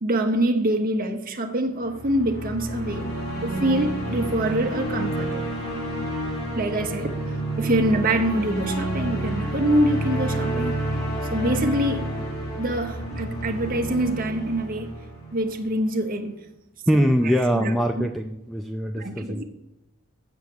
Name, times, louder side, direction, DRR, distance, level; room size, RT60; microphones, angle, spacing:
voice 1, 0.0-3.1 3.4-5.5 6.6-7.1 7.6-10.9 11.3-12.1 12.6-15.0 15.3-16.3 16.9-17.0 17.5-18.1 19.0-19.4, right 1 dB, 40° right, 0.9 m, -25 dB
sound 1, 1.7-15.9, right 1 dB, 40° left, 3.5 m, -29 dB
voice 2, 16.9-19.4, equal, ahead, 0.4 m, -23 dB
7.2 x 7.0 x 7.9 m
head